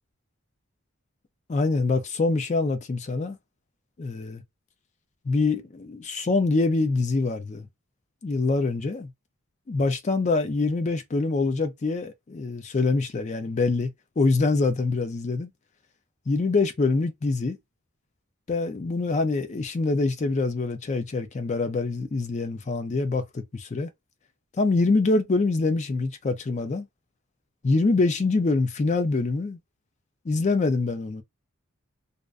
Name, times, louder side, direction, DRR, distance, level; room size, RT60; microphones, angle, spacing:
voice 1, 1.5-3.4 4.0-4.4 5.2-7.7 8.2-9.1 9.7-15.5 16.3-17.6 18.5-23.9 24.6-26.9 27.6-29.6 30.2-31.2, left 3 dB, 35° left, 0.4 m, -25 dB
2.5 x 2.1 x 2.4 m
head